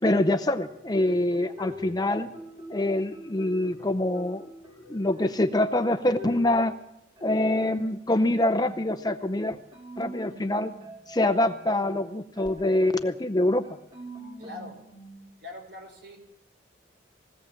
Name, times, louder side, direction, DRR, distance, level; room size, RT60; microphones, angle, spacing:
voice 1, 0.0-2.3 2.7-4.5 4.9-6.7 7.2-9.6 10.0-10.7 11.1-13.7, left 1 dB, 20° left, 9 dB, 0.7 m, -25 dB
sound 1, 0.6-6.8 7.2-15.2, left 1 dB, 25° right, 4.6 m, -46 dB
voice 2, 14.4-14.8 15.4-16.2, left 2 dB, 60° right, 3 dB, 5.6 m, -42 dB
21.0 x 17.5 x 7.6 m, 0.83 s
head